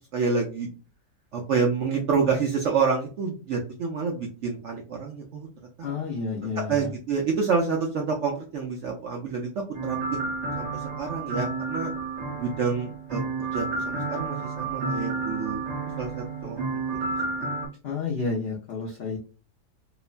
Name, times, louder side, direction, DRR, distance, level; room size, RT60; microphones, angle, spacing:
voice 1, 0.1-0.7 1.3-5.5 5.8-5.9 6.7-10.2 10.5-11.9 12.3-13.2 13.5-15.6 16.0-16.8, right 5 dB, 70° right, 0 dB, 0.7 m, -28 dB
voice 2, 5.8-6.9 17.8-19.2, left 4 dB, 70° left, -3 dB, 0.5 m, -30 dB
sound 1, 9.7-17.7, right 3 dB, 50° right, 1.3 m, -31 dB
2.9 x 2.1 x 2.3 m, 0.36 s
omnidirectional pair, 1.7 m